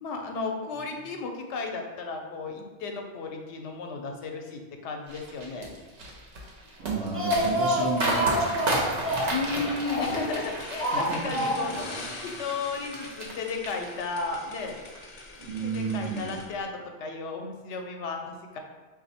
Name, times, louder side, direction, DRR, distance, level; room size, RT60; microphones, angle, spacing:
voice 1, 0.0-5.7 9.3-14.7 15.6-18.6, left 4 dB, 85° left, 3 dB, 0.9 m, -34 dB
sound 1, 5.1-13.3 13.6-14.3 14.7-15.0, right 1 dB, 90° right, 1.1 m, -33 dB
Speech, 6.8-10.3 10.8-11.9 12.2-12.3 12.6-12.7, equal, 15° right, 0.5 m, -28 dB
voice 2, 6.8-9.1 10.9-11.4 15.4-16.4, right 4 dB, 70° right, 2 dB, 0.8 m, -32 dB
sound 2, 10.0-16.4, left 2 dB, 50° left, 0.5 m, -44 dB
3.3 x 2.5 x 4.1 m, 1.3 s
omnidirectional pair, 1.1 m